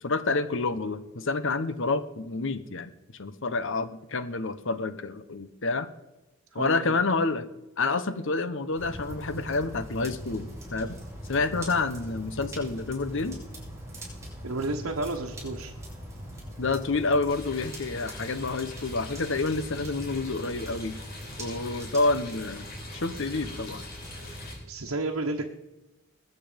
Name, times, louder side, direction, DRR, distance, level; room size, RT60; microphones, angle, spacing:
voice 1, 0.0-5.9 6.5-7.5 7.8-11.0 11.3-13.4 16.6-20.9 21.4-22.7 22.9-23.8, left 3 dB, 65° left, 12 dB, 1.1 m, -28 dB
voice 2, 6.5-7.0 14.4-15.7 24.7-25.5, right 2 dB, 75° right, 1 dB, 1.3 m, -31 dB
sound 1, 8.7-24.6, equal, 15° right, 6.4 m, -41 dB
sound 2, 17.3-24.6, left 2 dB, 45° left, 4.5 m, -45 dB
21.5 x 8.6 x 5.2 m, 1.0 s
head